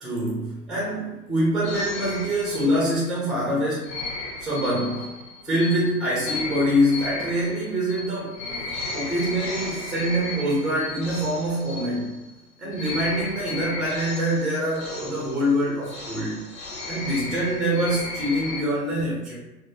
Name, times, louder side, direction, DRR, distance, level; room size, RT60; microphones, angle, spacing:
voice 1, 0.0-3.9 4.4-5.1 5.4-8.4 8.9-12.2 12.6-16.4 16.9-19.4, equal, ahead, -5 dB, 0.6 m, -25 dB
sound 1, 1.6-3.2 3.8-12.4 12.7-18.6, left 3 dB, 55° left, 1.3 m, -35 dB
4.2 x 2.1 x 3.0 m, 1.0 s
figure-of-eight pair, 115°, 49 cm